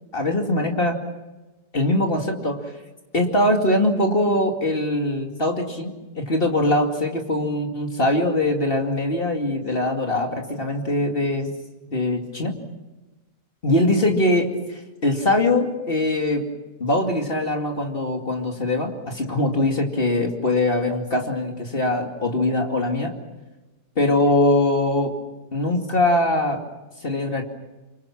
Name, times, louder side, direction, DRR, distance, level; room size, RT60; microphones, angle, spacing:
voice 1, 0.1-1.0 1.7-2.7 3.1-11.5 11.9-12.6 13.6-16.5 16.8-23.2 24.0-25.2 25.5-26.7 27.0-27.4, left 1 dB, 30° left, 2 dB, 2.7 m, -22 dB
27.0 x 25.0 x 6.1 m, 1.1 s
omnidirectional pair, 1.9 m